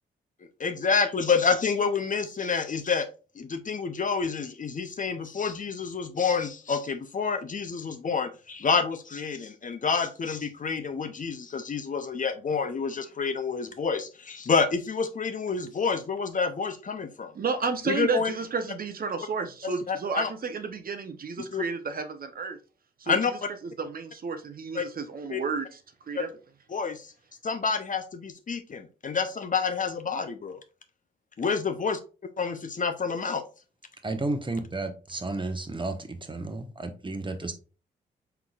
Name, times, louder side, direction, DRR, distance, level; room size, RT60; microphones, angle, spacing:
voice 1, 0.6-3.1 3.4-17.3 17.9-18.3 19.9-20.3 21.5-21.6 23.1-23.3 24.7-24.8 25.3-25.4 26.1-26.3 26.7-27.1 27.4-30.6 31.4-32.0 32.4-33.4, left 5 dB, 40° left, 9 dB, 0.7 m, -28 dB
voice 2, 17.3-22.6 23.0-25.8 26.1-26.3, right 4 dB, 45° right, 7 dB, 0.7 m, -32 dB
voice 3, 34.0-37.5, right 2 dB, 25° right, 7 dB, 1.0 m, -32 dB
4.5 x 3.9 x 2.4 m, 0.34 s
hypercardioid pair, 45°, 20 cm